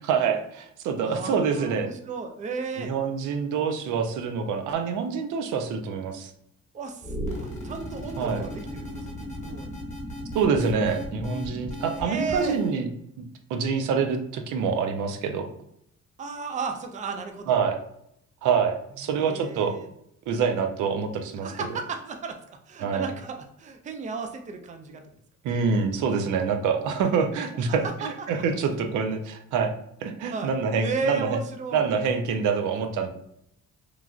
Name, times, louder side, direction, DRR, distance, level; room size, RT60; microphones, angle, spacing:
voice 1, 0.0-1.9 2.8-6.3 8.2-8.4 10.3-12.9 13.2-13.3 13.5-15.5 17.5-17.8 18.4-19.7 20.3-21.5 22.8-23.1 25.4-27.9 28.3-29.7 30.0-31.4 31.7-33.1, right 6 dB, 85° right, 6 dB, 0.5 m, -26 dB
voice 2, 1.0-2.9 6.7-9.7 11.9-12.6 16.2-17.6 19.1-19.9 21.4-25.0 27.5-28.7 30.3-30.5 30.8-31.9, right 4 dB, 25° right, 6 dB, 0.4 m, -34 dB
sound 1, 7.0-12.8, equal, 25° left, 1.1 m, -36 dB
3.1 x 2.4 x 2.3 m, 0.75 s
cardioid pair, 90°, 30 cm